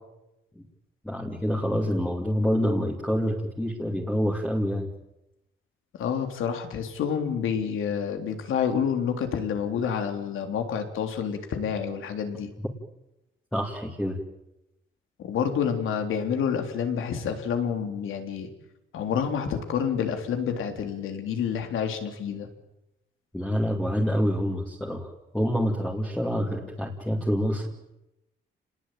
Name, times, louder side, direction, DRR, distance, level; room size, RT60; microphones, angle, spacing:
voice 1, 1.0-4.9 13.5-14.2 23.3-25.1 25.3-27.7, equal, 5° left, -1 dB, 2.6 m, -27 dB
voice 2, 6.0-12.5 15.2-18.5 18.9-22.5, left 7 dB, 85° left, 6 dB, 3.6 m, -28 dB
30.0 x 20.0 x 9.1 m, 0.93 s
wide cardioid pair, 170°, 20 cm